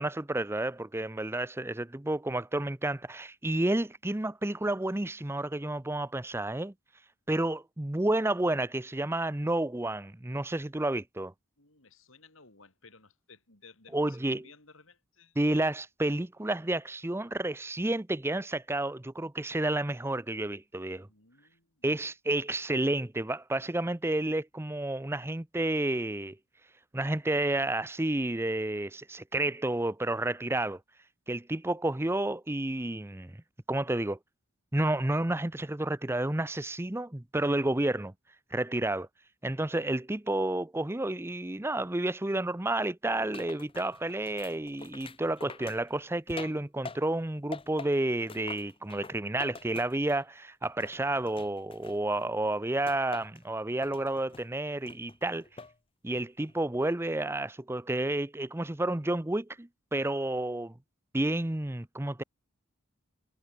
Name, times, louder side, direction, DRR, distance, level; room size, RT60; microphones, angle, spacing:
voice 1, 0.0-6.7 7.3-11.3 13.9-14.5 15.4-21.1 21.8-26.4 26.9-30.8 31.3-33.3 33.7-34.2 34.7-38.1 38.5-39.1 39.4-55.4 56.0-60.7 61.1-62.2, right 1 dB, 10° right, 0.6 m, -30 dB
voice 2, 11.6-15.4 21.1-21.9, left 4 dB, 70° left, 6.3 m, -57 dB
sound 1, 43.3-47.2 47.5-50.3 50.6-52.3 52.9-53.4 53.8-54.5 54.9-55.8 56.1-56.5, left 4 dB, 25° left, 0.9 m, -46 dB
head